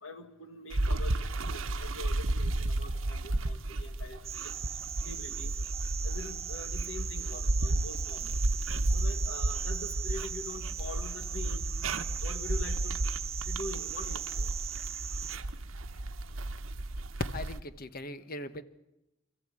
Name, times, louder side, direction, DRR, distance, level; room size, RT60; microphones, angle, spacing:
voice 1, 0.0-4.2 5.0-5.5 6.0-8.4 8.9-11.7 12.2-13.0 13.4-14.5, left 2 dB, 75° left, 8 dB, 1.9 m, -44 dB
sound 1, 0.7-17.6, right 2 dB, 80° right, 1.0 m, -33 dB
sound 2, 4.2-15.4, right 9 dB, 30° right, 0.8 m, -39 dB
voice 2, 17.3-18.6, left 1 dB, 50° left, 12 dB, 1.1 m, -40 dB
26.5 x 14.0 x 8.7 m, 0.94 s
head